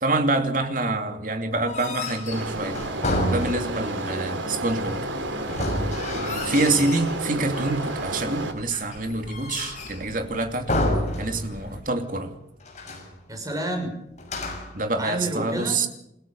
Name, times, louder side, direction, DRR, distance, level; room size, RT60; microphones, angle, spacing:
voice 1, 0.0-2.8 3.3-5.0 6.4-10.8 11.2-12.3 14.7-15.9, right 2 dB, 45° right, 6 dB, 2.7 m, -26 dB
sound 1, 1.5-4.0 5.4-7.1 7.5-8.2 8.7-10.1 10.7-11.8 12.0-12.1 12.6-13.1 14.2-14.8, left 1 dB, 40° left, 6.3 m, -30 dB
sound 2, 2.3-8.5, right 2 dB, 85° right, 3.4 m, -31 dB
sound 3, 4.6-11.8, left 1 dB, 65° left, 5.9 m, -47 dB
voice 2, 6.1-6.8 13.3-14.0 14.9-15.8, right 1 dB, 20° right, 4 dB, 6.2 m, -31 dB
29.0 x 16.5 x 5.5 m, 0.82 s
head